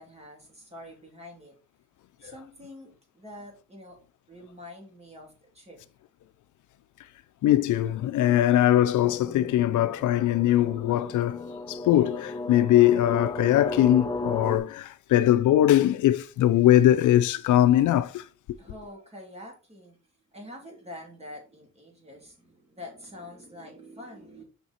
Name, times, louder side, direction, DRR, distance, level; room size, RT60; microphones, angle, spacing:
voice 1, 0.0-1.5 2.2-4.0 4.3-5.8 18.6-20.0 20.3-24.4, left 1 dB, 20° right, 3.4 m, -45 dB
voice 2, 7.4-11.4 11.7-18.3, left 13 dB, 70° left, 0.6 m, -21 dB
sound 1, 9.0-14.6, left 2 dB, 15° left, 0.7 m, -35 dB
6.8 x 5.8 x 4.4 m
cardioid pair, 160°, 32 cm